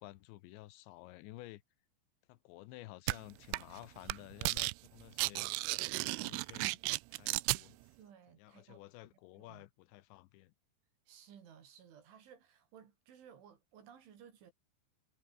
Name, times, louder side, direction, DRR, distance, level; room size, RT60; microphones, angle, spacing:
voice 1, 0.0-1.6 2.3-5.5 5.9-6.8 7.1-7.8 8.4-10.5, left 18 dB, 80° left, 2.8 m, -53 dB
sound 1, 3.1-3.2 3.5-3.8 4.1-4.7 5.0-7.6, right 24 dB, 85° right, 3.0 m, -34 dB
voice 2, 8.0-8.8 9.4-9.7 11.1-14.5, right 8 dB, 65° right, 5.7 m, -58 dB
omnidirectional pair, 5.9 m